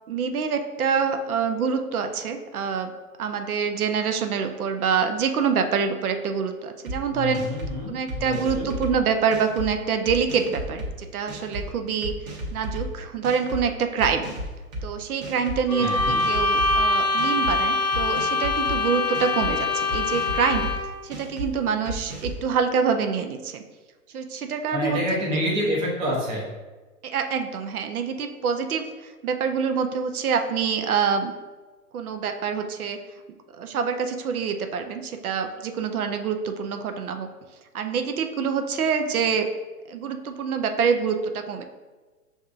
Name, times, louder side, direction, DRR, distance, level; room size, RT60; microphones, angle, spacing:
voice 1, 0.1-2.9 3.2-7.4 7.9-12.1 12.5-14.3 14.8-20.7 21.0-23.6 24.1-25.0 27.0-31.3 31.9-33.0 33.5-37.3 37.7-39.5 39.9-41.6, right 6 dB, 70° right, 6 dB, 0.6 m, -26 dB
sound 1, 6.9-7.0 7.3-7.7 8.1-8.9 9.3-9.7 10.1-10.9 11.3-11.6 12.0-12.9 13.2-13.6 14.0-14.8 15.2-15.6 16.0-16.8 17.2-17.5 17.9-18.8 19.1-19.5 19.9-20.7 21.1-21.5 21.9-22.4, right 1 dB, 30° right, 0.8 m, -33 dB
voice 2, 7.1-8.7 15.8-16.2 24.7-26.5, equal, 10° right, -4 dB, 0.5 m, -27 dB
sound 2, 15.7-21.0, left 3 dB, 80° left, 0.8 m, -24 dB
5.9 x 2.6 x 2.4 m, 1.3 s
hypercardioid pair, 125°, 45 cm